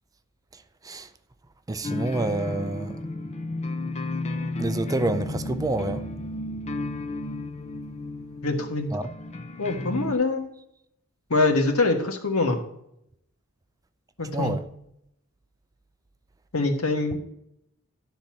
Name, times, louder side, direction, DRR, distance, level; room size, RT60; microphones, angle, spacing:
voice 1, 1.7-3.0 4.6-6.1 8.9-9.0 14.3-14.6, right 2 dB, 15° right, 0.4 m, -27 dB
sound 1, 1.8-10.1, left 2 dB, 30° left, 0.7 m, -33 dB
voice 2, 8.4-8.9 9.6-10.4 11.3-12.6 14.2-14.5 16.5-17.2, left 3 dB, 80° left, 1.4 m, -24 dB
11.5 x 3.9 x 7.4 m
head